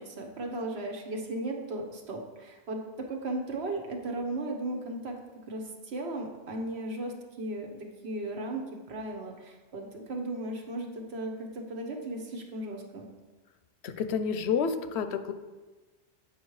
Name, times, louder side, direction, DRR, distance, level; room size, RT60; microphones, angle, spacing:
voice 1, 0.0-2.8 3.1-5.1 5.5-13.1, right 2 dB, 70° right, 1 dB, 1.3 m, -36 dB
voice 2, 13.8-15.3, left 6 dB, 75° left, 10 dB, 0.8 m, -29 dB
8.1 x 5.0 x 4.7 m, 1.2 s
omnidirectional pair, 1.1 m